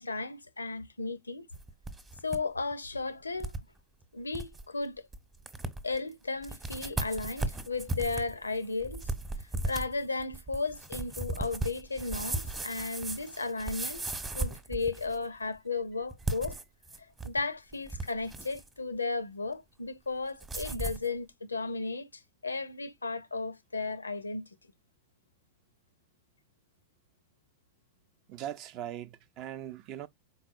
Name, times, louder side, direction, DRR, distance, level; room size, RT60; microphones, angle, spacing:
voice 1, 0.0-1.5 2.2-3.5 4.1-5.0 5.8-9.0 9.4-14.1 14.3-16.6 17.2-22.1 22.4-24.4, left 3 dB, 80° left, 0.4 m, -34 dB
sound 1, 1.5-2.4 2.7-2.8 3.4-3.6 4.0-4.1 4.3-4.6 5.1-5.2 5.5-6.0 6.4-15.2 16.1-17.4 17.7-18.7 20.4-21.1, right 2 dB, 15° right, 0.9 m, -36 dB
voice 2, 28.3-30.1, right 11 dB, 40° right, 0.4 m, -40 dB
4.7 x 3.8 x 2.5 m
figure-of-eight pair, 90°, 0 cm